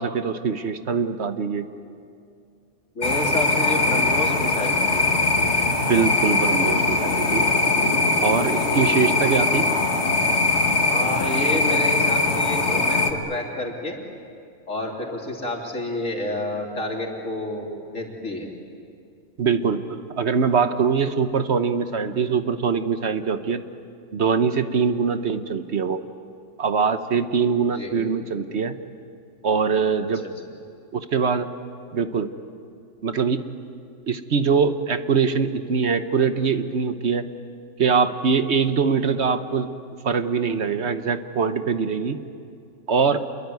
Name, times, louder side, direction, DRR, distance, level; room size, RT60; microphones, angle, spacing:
voice 1, 0.0-1.7 5.9-7.4 8.2-9.7 19.4-23.6 24.1-26.0 26.6-28.7 29.4-30.2 30.9-31.5 31.9-32.3 33.0-33.4 34.1-37.2 37.8-39.7 40.0-42.2 42.9-43.2, right 5 dB, 60° right, 10 dB, 1.2 m, -23 dB
voice 2, 3.0-5.0 10.9-14.0 14.7-18.5 27.7-27.9, left 1 dB, 75° left, 0 dB, 3.8 m, -29 dB
sound 1, 3.0-13.1, left 3 dB, 55° left, 2.1 m, -21 dB
27.5 x 22.0 x 9.5 m, 2.4 s
omnidirectional pair, 1.4 m